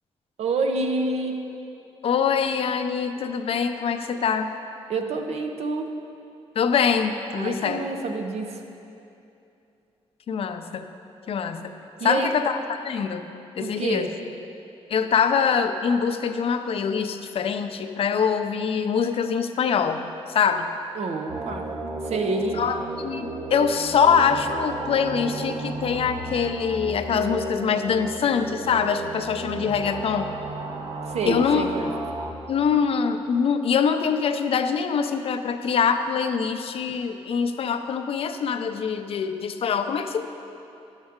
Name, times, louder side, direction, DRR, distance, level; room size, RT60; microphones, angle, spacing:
voice 1, 0.4-1.4 4.9-5.9 7.3-8.6 12.0-12.3 13.6-14.1 20.9-21.7 22.0-22.6 31.1-31.9, right 3 dB, 75° right, 4 dB, 0.7 m, -27 dB
voice 2, 2.0-4.5 6.6-7.8 10.3-10.9 11.3-11.7 12.0-13.2 13.6-14.1 14.9-20.1 20.3-20.7 22.6-30.3 31.3-31.7 32.5-40.3, left 6 dB, 60° left, 8 dB, 0.5 m, -24 dB
sound 1, 21.3-32.3, right 2 dB, 40° right, 0.6 m, -34 dB
10.5 x 7.2 x 3.6 m, 2.7 s
wide cardioid pair, 135°, 11 cm